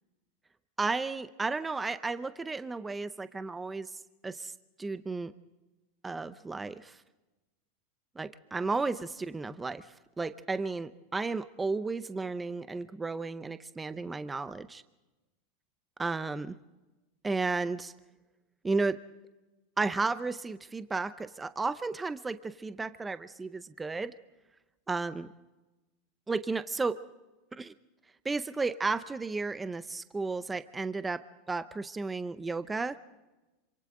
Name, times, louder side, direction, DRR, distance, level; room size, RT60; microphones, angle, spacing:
voice 1, 0.8-3.9 4.2-4.5 4.8-5.3 6.0-7.0 8.2-14.8 16.0-16.6 17.2-17.9 18.6-19.0 19.8-24.1 24.9-25.3 26.3-27.0 27.5-27.7 28.2-33.0, right 3 dB, 10° right, 12 dB, 0.6 m, -33 dB
27.0 x 26.0 x 3.8 m, 1.1 s
supercardioid pair, 150°, 0 cm